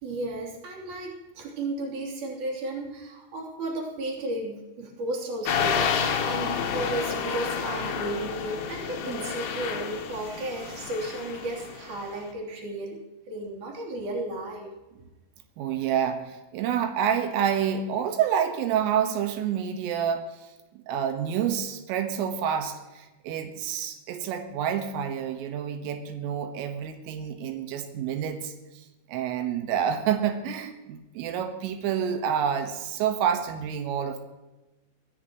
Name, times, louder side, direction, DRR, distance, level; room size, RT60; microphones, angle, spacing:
voice 1, 0.0-14.7, right 2 dB, 45° right, -1 dB, 4.1 m, -34 dB
sound 1, 5.5-12.1, left 6 dB, 80° left, 1.7 m, -30 dB
voice 2, 15.6-20.5 20.7-34.2, right 8 dB, 90° right, 6 dB, 3.8 m, -28 dB
23.5 x 13.5 x 3.0 m, 1.1 s
omnidirectional pair, 5.7 m